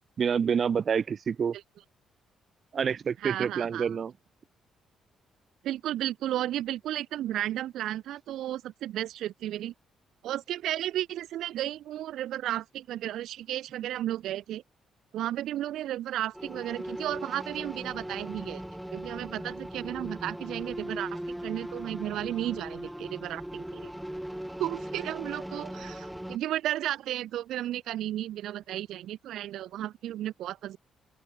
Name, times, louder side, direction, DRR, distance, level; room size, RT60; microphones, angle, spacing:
voice 1, 0.2-1.6 2.7-4.1, right 7 dB, 50° right, 2.7 m, -27 dB
voice 2, 3.2-3.9 5.6-9.7 10.2-14.6 15.1-18.6 18.9-23.9 24.6-30.8, right 13 dB, 80° right, 1.9 m, -33 dB
sound 1, 16.3-26.4, equal, 5° right, 3.4 m, -39 dB
cardioid pair, 90°, 0 cm